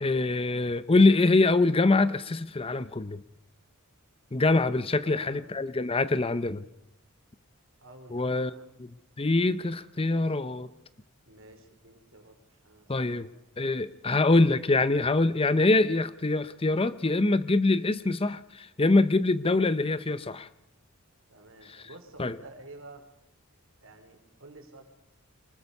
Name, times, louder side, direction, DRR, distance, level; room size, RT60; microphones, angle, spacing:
voice 1, 0.0-3.2 4.3-6.6 8.1-8.5 8.8-8.9 9.2-10.7 12.9-13.3 13.6-20.5 21.7-21.8 22.2-22.4, left 2 dB, 25° left, 15 dB, 0.7 m, -24 dB
voice 2, 5.0-5.8 7.8-8.7 11.3-13.4 21.3-23.0 23.8-24.8, right 2 dB, 65° right, 6 dB, 3.8 m, -51 dB
24.0 x 20.0 x 5.4 m, 0.88 s
head